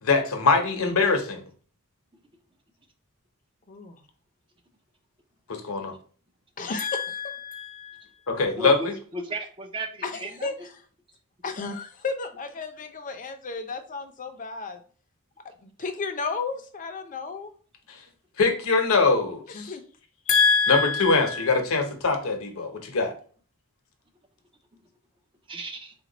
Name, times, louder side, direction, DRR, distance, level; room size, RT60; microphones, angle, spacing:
voice 1, 0.0-1.4 5.5-5.9 8.4-8.9 18.4-19.7 20.3-23.1, left 4 dB, 65° left, 5 dB, 0.8 m, -22 dB
voice 2, 3.7-4.0 6.6-7.6 10.0-10.5 11.4-14.8 15.6-17.5 19.5-19.8, left 4 dB, 35° left, 6 dB, 0.6 m, -33 dB
voice 3, 9.1-10.5 24.7-24.8 25.5-25.9, right 2 dB, 25° right, 4 dB, 0.5 m, -35 dB
4.2 x 2.3 x 3.9 m, 0.43 s
head